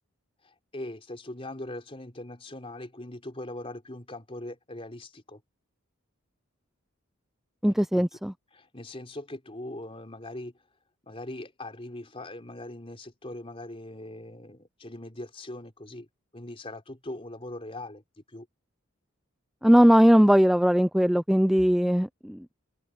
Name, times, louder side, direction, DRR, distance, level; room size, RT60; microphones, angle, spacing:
voice 1, 0.4-5.4 7.7-8.0 8.5-10.6 11.0-16.1 16.3-18.0 18.3-18.5, left 1 dB, 30° left, 3.7 m, -41 dB
voice 2, 7.6-8.3 19.6-22.5, equal, ahead, 0.4 m, -20 dB
head